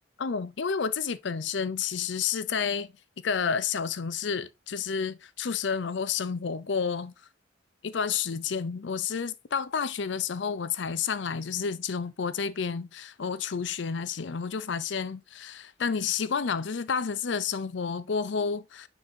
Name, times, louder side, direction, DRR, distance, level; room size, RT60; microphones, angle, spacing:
voice 1, 0.2-2.9 3.2-7.1 7.8-18.9, left 6 dB, 65° left, 0.5 m, -30 dB
9.7 x 4.1 x 2.7 m
head